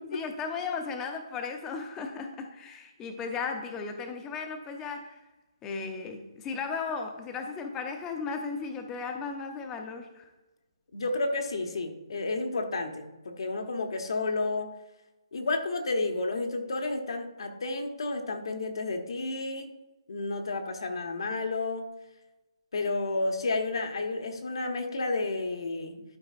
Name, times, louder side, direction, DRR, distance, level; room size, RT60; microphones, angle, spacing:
voice 1, 0.0-5.2 5.6-10.3, left 5 dB, 10° left, 4 dB, 0.6 m, -35 dB
voice 2, 10.9-14.7 15.3-19.7 20.1-21.9 22.7-26.0, left 3 dB, 65° left, 5 dB, 1.1 m, -31 dB
11.5 x 5.2 x 2.5 m, 1.1 s
hypercardioid pair, 170°, 3 cm